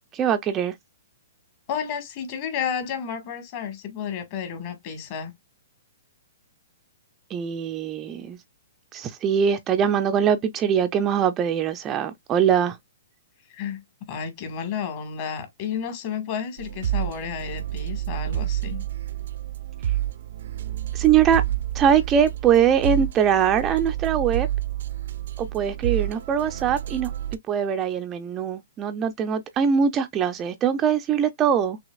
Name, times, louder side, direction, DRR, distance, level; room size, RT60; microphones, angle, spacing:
voice 1, 0.1-0.7 7.3-8.4 8.9-12.8 20.9-21.4 21.7-24.5 25.4-27.1 27.5-31.8, right 8 dB, 20° right, 0.5 m, -22 dB
voice 2, 1.7-5.3 13.6-13.8 14.1-18.8, left 7 dB, 35° left, 1.7 m, -31 dB
sound 1, 16.6-27.4, right 13 dB, 65° right, 0.6 m, -29 dB
6.2 x 2.8 x 2.4 m
hypercardioid pair, 155°, 0 cm